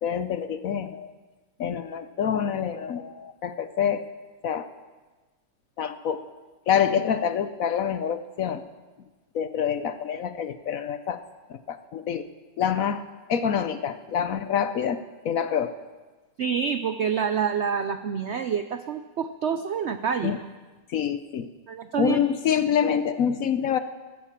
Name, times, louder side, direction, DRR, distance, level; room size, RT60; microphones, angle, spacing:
voice 1, 0.0-1.1 1.6-4.1 4.4-4.7 5.8-6.2 6.7-8.6 9.3-11.2 11.5-12.3 12.6-13.0 13.3-15.8 20.2-20.4 20.9-21.5 22.0-23.8, left 8 dB, 60° left, 11 dB, 1.0 m, -26 dB
voice 2, 16.4-20.3 21.7-22.2, right 7 dB, 70° right, 10 dB, 0.6 m, -27 dB
14.5 x 13.5 x 7.3 m, 1.3 s
omnidirectional pair, 1.9 m